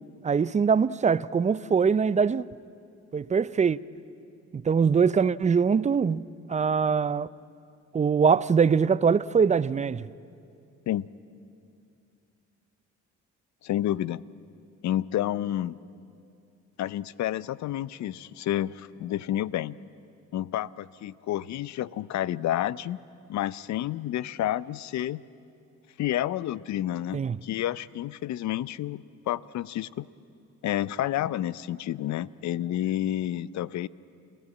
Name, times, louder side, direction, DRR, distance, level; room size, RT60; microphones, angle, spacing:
voice 1, 0.2-2.5 3.1-3.8 4.5-7.3 7.9-10.1 27.1-27.4, right 6 dB, 25° right, 0.5 m, -23 dB
voice 2, 13.6-14.2 14.8-15.8 16.8-19.8 20.3-23.0 23.3-25.2 26.0-30.1 30.6-33.9, left 12 dB, 65° left, 0.6 m, -30 dB
29.5 x 16.0 x 8.6 m
cardioid pair, 90°, 30 cm